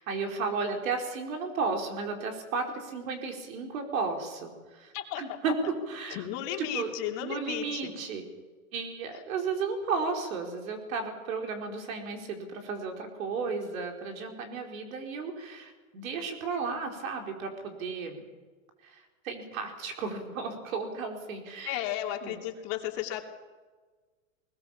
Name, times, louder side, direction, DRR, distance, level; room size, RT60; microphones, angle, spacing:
voice 1, 0.0-6.3 6.6-6.9 7.2-8.2 8.7-18.3 18.8-21.8 22.2-22.4, right 4 dB, 75° right, 3 dB, 4.8 m, -34 dB
voice 2, 6.1-7.9 21.6-23.2, left 12 dB, 50° left, 3 dB, 2.9 m, -34 dB
20.5 x 20.0 x 7.3 m, 1.4 s
hypercardioid pair, 115°, 42 cm